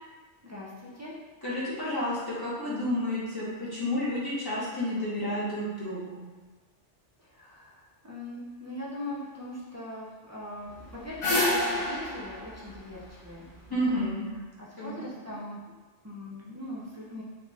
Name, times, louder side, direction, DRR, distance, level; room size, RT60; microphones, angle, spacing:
voice 1, 0.4-1.1 7.3-13.9 14.6-15.6 16.0-17.2, left 1 dB, 15° right, -7 dB, 0.6 m, -41 dB
voice 2, 1.4-6.2 13.7-14.2 14.8-14.9, left 1 dB, 20° left, -9 dB, 1.0 m, -30 dB
sound 1, 10.7-13.9, left 1 dB, 60° left, 1.5 m, -29 dB
4.2 x 2.5 x 3.4 m, 1.3 s
omnidirectional pair, 1.2 m